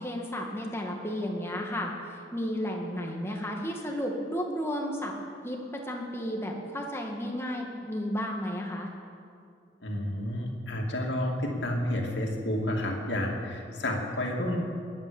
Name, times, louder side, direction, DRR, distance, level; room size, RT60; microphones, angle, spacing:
voice 1, 0.0-1.9 2.3-5.1 5.4-8.9, equal, 15° left, 0 dB, 1.8 m, -33 dB
voice 2, 9.8-14.6, left 1 dB, 80° left, 0 dB, 2.6 m, -30 dB
21.5 x 9.4 x 7.1 m, 2.4 s
head